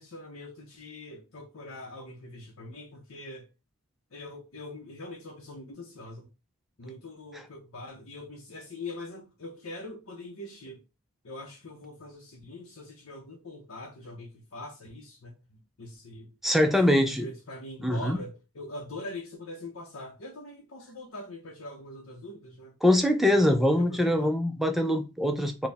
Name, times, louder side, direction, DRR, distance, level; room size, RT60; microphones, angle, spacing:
voice 1, 0.0-3.5 4.1-6.3 6.8-10.8 11.2-16.3 16.7-22.7 23.3-24.3, left 2 dB, 65° left, 0.7 m, -43 dB
voice 2, 16.4-17.3 17.8-18.2 22.8-25.7, left 1 dB, ahead, 0.4 m, -23 dB
4.2 x 2.2 x 3.4 m
head